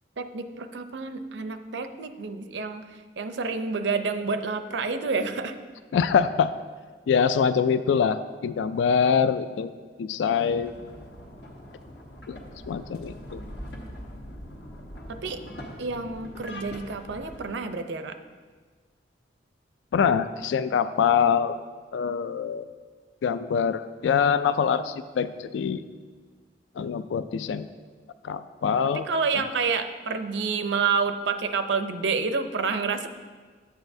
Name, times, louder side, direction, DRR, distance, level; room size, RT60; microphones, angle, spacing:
voice 1, 0.2-2.8 3.2-5.6 15.1-15.4 15.8-18.2 29.1-33.1, right 4 dB, 80° right, 9 dB, 0.5 m, -28 dB
voice 2, 5.9-6.5 7.1-9.7 10.0-10.7 12.3-12.4 12.7-13.4 19.9-21.6 21.9-22.7 23.2-25.8 26.8-27.7 28.2-29.1, left 7 dB, 85° left, 12 dB, 0.3 m, -24 dB
sound 1, 10.4-17.5, equal, 70° left, 1.2 m, -42 dB
11.0 x 8.0 x 2.7 m, 1.5 s
head